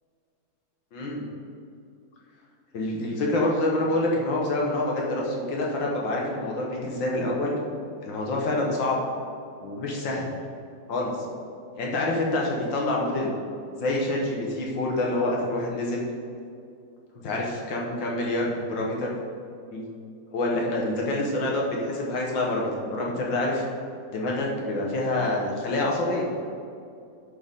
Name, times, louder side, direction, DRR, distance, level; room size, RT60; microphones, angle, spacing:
voice 1, 0.9-1.2 2.7-7.5 8.0-9.0 9.6-10.3 10.9-11.2 11.8-13.3 13.8-16.0 17.2-19.1 19.7-19.9 20.3-23.6 24.1-26.3, left 2 dB, 75° left, -2 dB, 2.2 m, -27 dB
10.5 x 6.7 x 3.8 m, 2.5 s
omnidirectional pair, 2.1 m